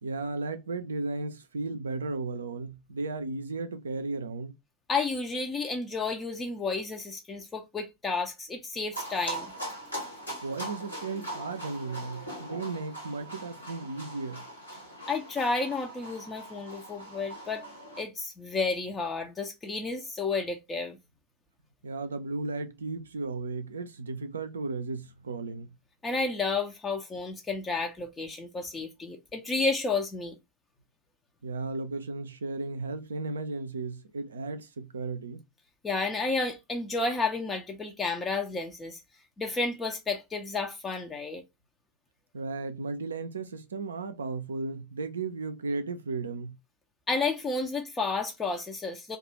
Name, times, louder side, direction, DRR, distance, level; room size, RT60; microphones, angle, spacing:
voice 1, 0.0-4.5 10.4-14.5 21.8-25.7 31.4-35.4 42.3-46.6, right 3 dB, 70° right, 0.4 m, -35 dB
voice 2, 4.9-9.5 15.1-17.6 18.0-21.0 26.0-30.4 35.8-39.0 39.4-41.4 47.1-49.2, left 3 dB, 15° left, 0.5 m, -31 dB
sound 1, 8.9-18.0, right 1 dB, 90° left, 1.1 m, -41 dB
2.3 x 2.3 x 2.9 m
figure-of-eight pair, 90°, 0 cm